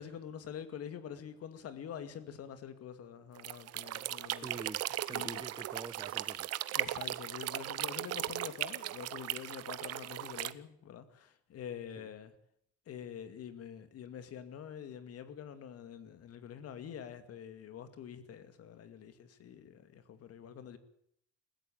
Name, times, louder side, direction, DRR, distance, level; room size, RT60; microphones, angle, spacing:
voice 1, 0.0-4.5 5.1-5.4 6.7-12.3 12.9-20.8, left 8 dB, 55° left, 10 dB, 2.3 m, -46 dB
sound 1, 3.4-10.5, right 14 dB, 55° right, 0.9 m, -37 dB
voice 2, 4.4-6.5 12.0-12.1, right 3 dB, 15° right, 12 dB, 1.2 m, -46 dB
20.5 x 15.5 x 8.8 m, 0.71 s
cardioid pair, 115°, 29 cm